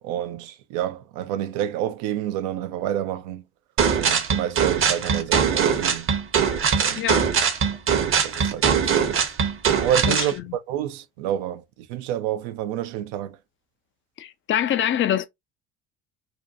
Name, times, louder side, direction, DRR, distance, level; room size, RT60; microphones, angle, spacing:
voice 1, 0.0-3.4 4.0-6.1 6.8-7.2 7.7-7.8 8.2-9.1 9.8-13.4, right 11 dB, 70° right, 0.5 m, -29 dB
sound 1, 3.8-10.3, right 7 dB, 40° right, 0.8 m, -21 dB
voice 2, 7.0-7.3 10.1-10.2 14.2-15.3, left 10 dB, 40° left, 0.4 m, -24 dB
2.6 x 2.2 x 2.5 m
hypercardioid pair, 65°, 33 cm